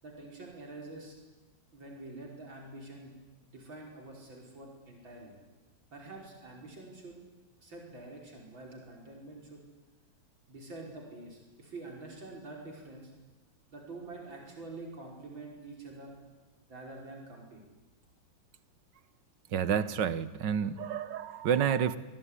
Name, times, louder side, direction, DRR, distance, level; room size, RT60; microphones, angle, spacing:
voice 1, 0.0-1.2 1.7-3.2 3.5-5.4 5.9-7.2 7.6-9.6 10.5-13.1 13.7-16.1 16.7-17.6, right 2 dB, 90° right, 0 dB, 5.9 m, -46 dB
voice 2, 19.5-22.0, right 8 dB, 70° right, 15 dB, 1.8 m, -29 dB
27.0 x 21.0 x 10.0 m, 1.1 s
omnidirectional pair, 2.0 m